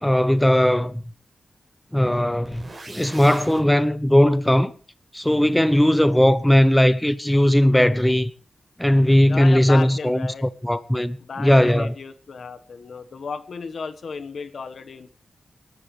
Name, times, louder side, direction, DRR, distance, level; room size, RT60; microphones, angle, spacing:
voice 1, 0.0-1.0 1.9-4.7 5.1-8.3 8.8-11.9, equal, 5° left, 0.9 m, -18 dB
sound 1, 2.4-3.6, right 2 dB, 40° right, 6.0 m, -40 dB
voice 2, 9.3-10.5 11.2-15.1, left 5 dB, 70° left, 1.4 m, -34 dB
28.5 x 12.5 x 3.3 m
wide cardioid pair, 110°, 0 cm